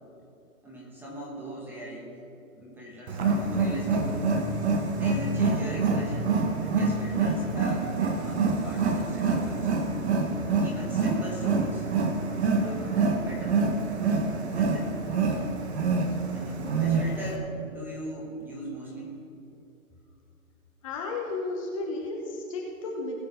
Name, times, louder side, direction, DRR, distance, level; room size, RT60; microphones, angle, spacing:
voice 1, 0.6-2.2 2.5-4.3 4.9-9.8 10.6-11.9 12.5-13.6 14.5-15.0 16.3-19.2, right 1 dB, 5° right, -3 dB, 1.1 m, -39 dB
Wild animals, 3.1-17.4, right 4 dB, 50° right, 1.5 m, -26 dB
voice 2, 20.8-23.2, left 3 dB, 25° left, 0 dB, 1.0 m, -33 dB
19.5 x 6.6 x 4.2 m, 2.7 s
hypercardioid pair, 150°, 43 cm